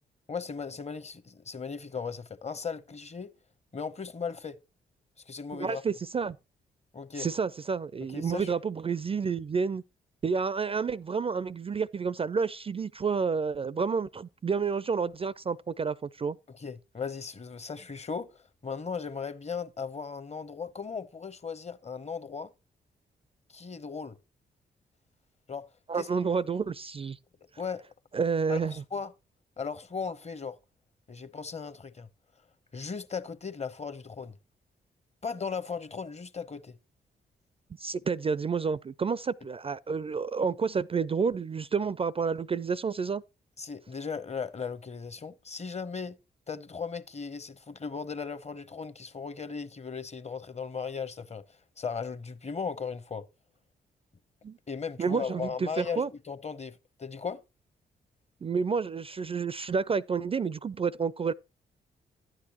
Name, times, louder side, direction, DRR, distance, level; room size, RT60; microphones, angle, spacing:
voice 1, 0.3-3.3 3.7-4.6 5.3-5.8 6.9-7.3 8.1-8.5 16.6-22.5 23.5-24.2 25.5-25.7 25.9-26.1 27.6-27.8 28.5-29.1 29.6-30.6 31.1-32.1 32.7-34.4 35.2-36.7 43.6-46.2 46.5-51.4 51.8-53.2 54.7-57.4, left 5 dB, 35° left, 0.8 m, -37 dB
voice 2, 5.5-6.4 7.2-9.8 10.2-16.4 25.9-27.2 28.1-28.7 37.8-43.2 54.4-54.6 55.0-56.1 58.4-61.3, right 5 dB, 30° right, 0.4 m, -30 dB
11.5 x 8.9 x 2.9 m
hypercardioid pair, 40°, 20 cm